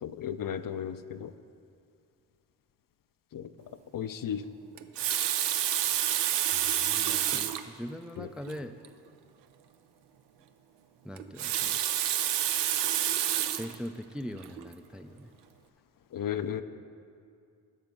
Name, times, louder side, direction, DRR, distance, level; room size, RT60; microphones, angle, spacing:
voice 1, 0.0-1.3 3.3-3.5 3.9-4.4 8.2-8.3 16.1-16.6, left 9 dB, 55° left, 11 dB, 0.5 m, -34 dB
Water tap faucet, 4.8-7.7 8.5-8.6 8.8-8.9 11.2-13.8 14.4-14.6, right 11 dB, 85° right, 0.5 m, -28 dB
voice 2, 6.5-8.8 11.0-11.8 13.5-15.3, equal, ahead, 8 dB, 0.3 m, -41 dB
10.5 x 6.6 x 5.4 m, 2.4 s
cardioid pair, 50°, 41 cm